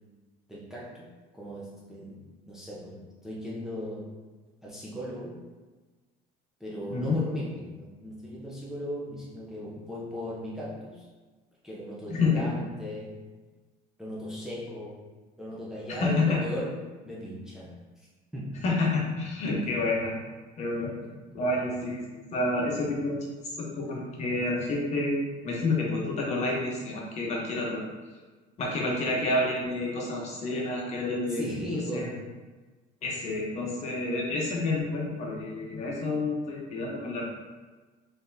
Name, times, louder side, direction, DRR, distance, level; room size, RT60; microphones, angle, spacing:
voice 1, 0.5-4.2 4.6-5.5 6.6-11.1 11.6-13.3 14.0-15.1 15.4-18.1 18.3-18.6 21.0-21.1 31.3-32.3, equal, 5° right, -6 dB, 0.6 m, -37 dB
voice 2, 12.1-12.5 15.9-16.4 18.6-20.2 20.6-21.0 21.3-23.3 23.6-25.1 25.4-27.8 28.6-31.4 31.9-32.1 33.0-37.2, left 2 dB, 40° left, -2 dB, 1.0 m, -29 dB
3.9 x 3.3 x 2.7 m, 1.3 s
cardioid pair, 140°, 17 cm